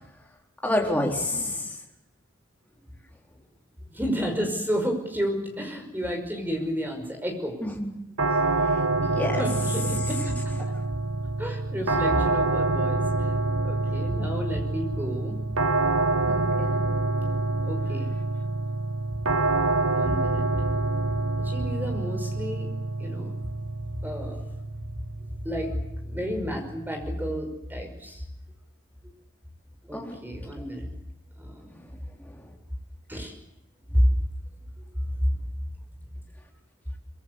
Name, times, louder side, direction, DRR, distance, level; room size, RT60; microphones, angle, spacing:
voice 1, 0.6-1.6 7.6-7.9 9.0-9.4 16.3-16.7 29.9-30.2, left 1 dB, 10° left, 0 dB, 4.1 m, -28 dB
voice 2, 3.9-7.6 9.3-10.7 11.4-13.4 13.6-15.4 17.6-18.1 19.9-20.4 21.4-22.7 23.0-23.3 24.0-24.4 25.4-25.8 26.0-28.2 29.9-30.9 31.4-31.7 32.1-32.2 33.1-33.3 33.8-34.2 35.2-35.3, equal, 10° right, 3 dB, 5.6 m, -30 dB
sound 1, 8.2-27.1, right 2 dB, 85° right, 1.2 m, -27 dB
24.0 x 22.5 x 8.4 m, 0.82 s
head